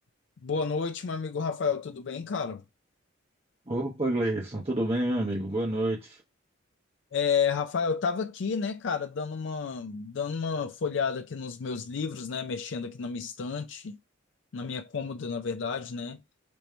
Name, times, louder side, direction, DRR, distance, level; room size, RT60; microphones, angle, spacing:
voice 1, 0.4-2.6 7.1-14.0 14.5-16.2, left 5 dB, 65° left, 0.4 m, -31 dB
voice 2, 3.7-6.2, right 1 dB, 30° right, 1.0 m, -28 dB
5.2 x 3.0 x 3.2 m
head